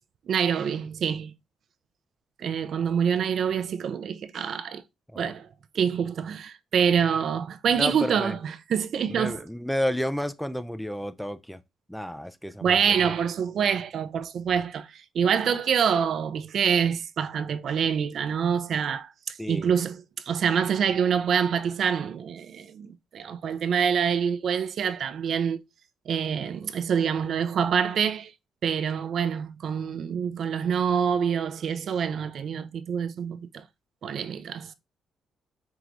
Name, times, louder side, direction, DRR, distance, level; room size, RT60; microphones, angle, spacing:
voice 1, 0.3-1.3 2.4-4.8 5.2-5.5 5.7-9.4 12.6-25.6 26.1-28.3 28.6-33.6 34.0-34.7, right 7 dB, 60° right, 0.4 m, -26 dB
voice 2, 7.8-8.4 9.1-11.6 11.9-13.1 19.4-19.7, equal, ahead, 0.3 m, -31 dB
4.7 x 3.0 x 2.5 m
cardioid pair, 90°, 0 cm